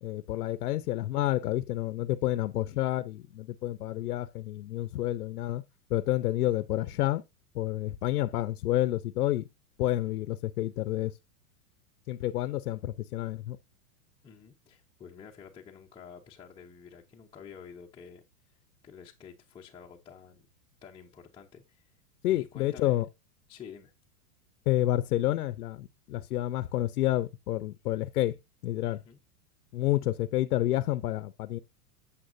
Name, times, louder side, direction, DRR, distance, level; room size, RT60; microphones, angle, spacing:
voice 1, 0.0-5.6 5.9-7.2 7.5-9.5 9.8-11.1 12.1-13.6 22.2-23.1 24.7-28.4 28.6-29.0 29.7-31.6, left 14 dB, 80° left, 0.7 m, -29 dB
voice 2, 14.2-18.6 18.8-20.5 20.8-21.9 22.3-23.0 23.5-23.9 28.9-29.2, left 7 dB, 10° left, 0.7 m, -50 dB
8.8 x 7.2 x 2.6 m
hypercardioid pair, 130°, 45 cm